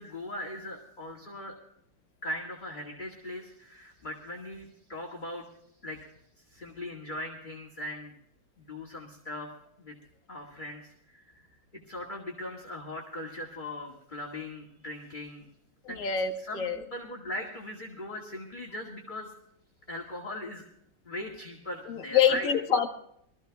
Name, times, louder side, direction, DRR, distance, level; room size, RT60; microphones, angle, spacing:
voice 1, 0.0-1.6 2.2-5.5 5.8-6.0 6.5-8.1 8.6-9.5 9.8-9.9 10.3-11.4 11.9-15.5 15.9-16.0 16.4-19.3 19.9-20.7 21.1-22.5, left 1 dB, 25° left, -1 dB, 2.1 m, -39 dB
voice 2, 15.8-16.8 21.9-22.9, left 8 dB, 50° left, 2 dB, 1.7 m, -26 dB
23.5 x 14.5 x 2.3 m, 0.74 s
omnidirectional pair, 2.1 m